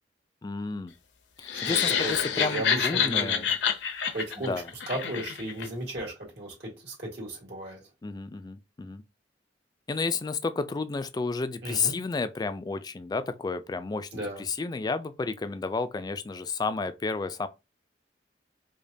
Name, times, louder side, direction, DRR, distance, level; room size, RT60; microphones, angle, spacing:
voice 1, 0.4-0.9 1.4-3.5 4.5-4.7 8.0-9.0 9.9-17.5, left 4 dB, 20° left, 0.3 m, -31 dB
sound 1, 1.4-5.7, left 7 dB, 70° left, 0.6 m, -28 dB
voice 2, 1.6-3.4 4.1-4.5 4.9-7.8 11.6-11.9 14.1-14.4, right 1 dB, 65° right, 1.7 m, -35 dB
5.0 x 2.2 x 2.7 m
head